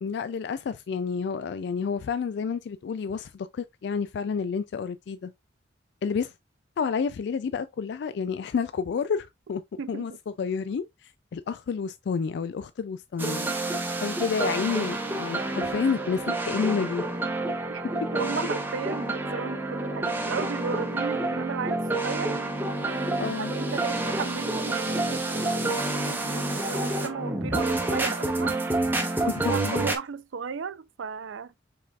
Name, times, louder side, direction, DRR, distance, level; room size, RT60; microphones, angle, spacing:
voice 1, 0.0-5.3 6.0-6.3 6.8-9.6 9.9-10.1 10.4-13.5 14.0-17.0 23.2-23.5 29.3-29.8, left 6 dB, 60° left, 0.3 m, -30 dB
sound 1, 13.2-30.0, right 2 dB, 10° right, 0.8 m, -28 dB
voice 2, 14.3-14.9 17.7-17.8 18.1-22.3 23.2-28.6 29.2-31.5, right 6 dB, 80° right, 0.5 m, -35 dB
5.3 x 4.0 x 2.3 m
head